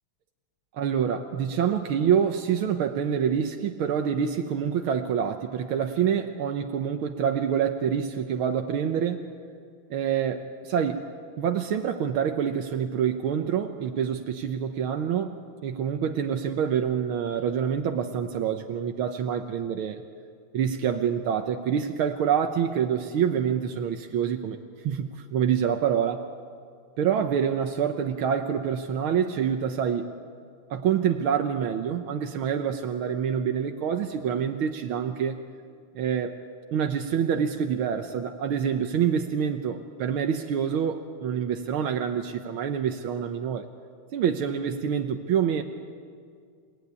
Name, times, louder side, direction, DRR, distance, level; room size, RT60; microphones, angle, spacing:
voice 1, 0.7-9.3 9.9-11.0 11.4-20.0 20.5-24.6 24.8-26.2 27.0-30.1 30.7-35.4 36.0-36.3 36.7-43.7 44.1-45.6, right 8 dB, 85° right, 5 dB, 1.8 m, -26 dB
29.0 x 17.5 x 9.7 m, 2.2 s
omnidirectional pair, 2.3 m